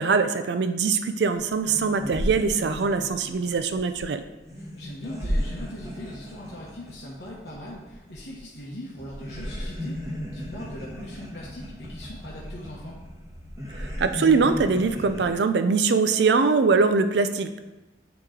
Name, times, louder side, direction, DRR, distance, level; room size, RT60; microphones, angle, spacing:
voice 1, 0.0-4.2 13.8-17.6, right 4 dB, 70° right, 9 dB, 0.4 m, -22 dB
sound 1, 1.6-8.7 9.0-15.3, equal, 15° right, 0.9 m, -35 dB
voice 2, 4.6-13.0, left 1 dB, 75° left, -5 dB, 1.0 m, -40 dB
8.9 x 3.0 x 3.8 m, 1.1 s
head